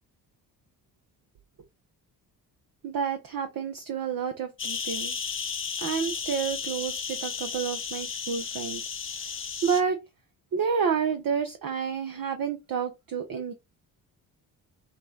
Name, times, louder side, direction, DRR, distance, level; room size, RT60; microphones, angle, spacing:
voice 1, 2.8-5.2 5.8-8.8 9.6-10.0 10.5-13.5, right 6 dB, 45° right, 0.8 m, -29 dB
sound 1, 4.6-9.8, left 6 dB, 25° left, 0.8 m, -34 dB
5.9 x 2.2 x 3.8 m
hypercardioid pair, 45°, 50 cm